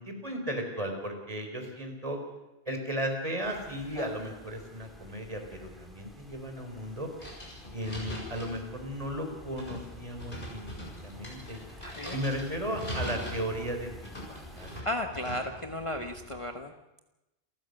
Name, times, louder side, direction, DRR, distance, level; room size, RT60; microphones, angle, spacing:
voice 1, 0.0-2.2 2.7-7.1 7.7-10.6 11.0-11.6 12.1-13.9 14.3-14.7, equal, 35° right, 3 dB, 4.3 m, -35 dB
sound 1, 3.4-14.8, equal, ahead, 3.5 m, -52 dB
sound 2, 7.2-16.4, equal, 55° left, 7.2 m, -42 dB
voice 2, 11.8-12.1 14.8-16.7, left 1 dB, 30° left, 4 dB, 1.2 m, -34 dB
28.5 x 14.5 x 6.7 m, 0.97 s
omnidirectional pair, 1.1 m